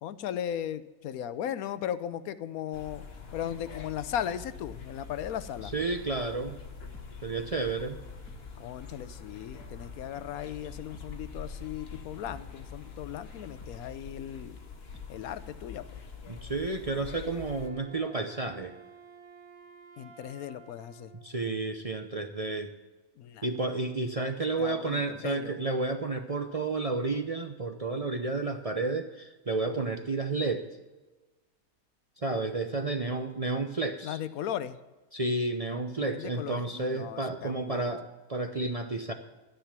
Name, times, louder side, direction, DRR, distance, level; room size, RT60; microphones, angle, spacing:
voice 1, 0.0-3.0 3.3-5.7 8.6-14.6 15.1-16.0 20.0-21.1 23.2-23.5 24.6-25.6 34.0-34.8 36.0-37.9, left 10 dB, 80° left, 14 dB, 1.1 m, -37 dB
sound 1, 2.7-17.7, left 5 dB, 45° left, 1.4 m, -45 dB
sound 2, 5.6-15.8 16.1-16.2, equal, 10° left, 1.8 m, -56 dB
voice 2, 5.7-6.6 7.2-8.0 16.3-18.7 21.2-22.7 23.4-30.7 32.2-34.2 35.1-39.1, right 3 dB, 35° right, 5 dB, 0.6 m, -31 dB
Wind instrument woodwind instrument, 17.1-21.3, right 5 dB, 90° right, 1.7 m, -52 dB
11.5 x 10.0 x 5.9 m, 1.2 s
omnidirectional pair, 1.5 m